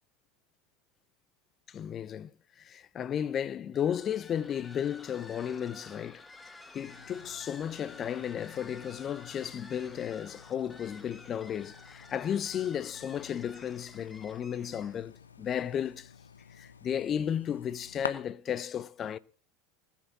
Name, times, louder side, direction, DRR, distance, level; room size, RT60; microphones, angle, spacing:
voice 1, 1.7-2.3 2.6-6.2 6.7-16.1 16.5-19.2, left 9 dB, 30° left, 0.7 m, -34 dB
sound 1, 3.7-15.1, left 3 dB, 10° left, 1.3 m, -52 dB
sound 2, 6.8-18.1, left 6 dB, 75° left, 1.0 m, -49 dB
20.0 x 7.4 x 6.0 m
figure-of-eight pair, 80°, 0 cm